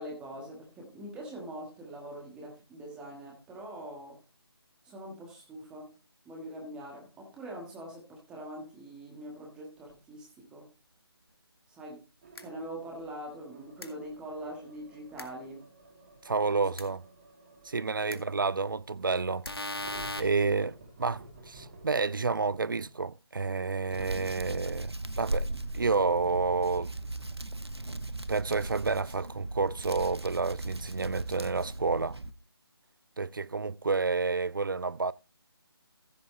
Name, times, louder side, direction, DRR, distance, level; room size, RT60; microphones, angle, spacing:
voice 1, 0.0-4.2 4.8-5.9 6.2-10.7 11.7-12.0 12.4-15.6 18.1-18.2 20.3-20.6, right 1 dB, 5° right, 1.6 m, -43 dB
sound 1, 9.8-10.0 12.2-22.9, right 2 dB, 25° right, 2.5 m, -53 dB
sound 2, 12.3-12.4 13.8-13.9 15.2-15.3 16.8-16.9 18.1-18.2 19.4-20.2, left 2 dB, 65° left, 1.9 m, -36 dB
voice 2, 16.2-17.0 17.6-19.5 20.2-26.9 28.3-32.2 33.2-35.1, right 4 dB, 55° right, 0.5 m, -30 dB
Hands, 23.9-32.3, right 2 dB, 80° right, 1.2 m, -37 dB
15.0 x 7.9 x 3.1 m
figure-of-eight pair, 155°, 13 cm